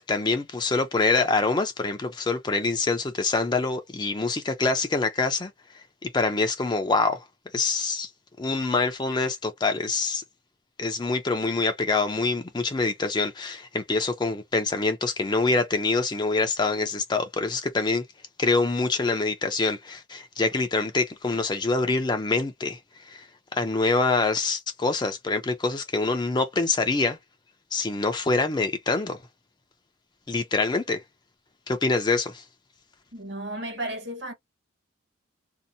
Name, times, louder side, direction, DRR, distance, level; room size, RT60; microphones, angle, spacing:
voice 1, 0.0-7.2 7.5-8.1 8.4-10.2 10.8-18.0 18.4-23.3 23.5-27.2 27.7-29.2 30.3-31.0 31.7-32.4, left 3 dB, 20° left, 0.4 m, -25 dB
voice 2, 33.1-34.3, right 1 dB, 60° right, 1.3 m, -33 dB
2.7 x 2.1 x 2.6 m
head